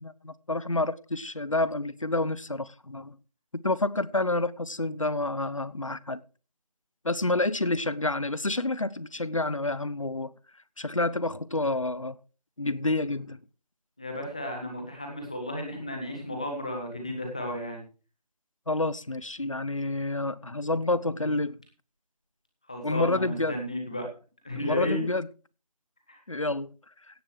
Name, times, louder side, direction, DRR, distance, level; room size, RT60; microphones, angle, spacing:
voice 1, 0.0-3.2 3.5-6.2 7.0-10.3 10.8-12.2 12.6-13.4 18.7-21.6 22.8-23.6 24.6-25.3 26.3-26.7, left 2 dB, 55° left, 0.9 m, -29 dB
voice 2, 14.0-17.8 22.7-24.0 24.4-25.1 26.1-26.2, left 1 dB, 10° left, 1.5 m, -33 dB
17.0 x 7.3 x 4.6 m
figure-of-eight pair, 175°, 20 cm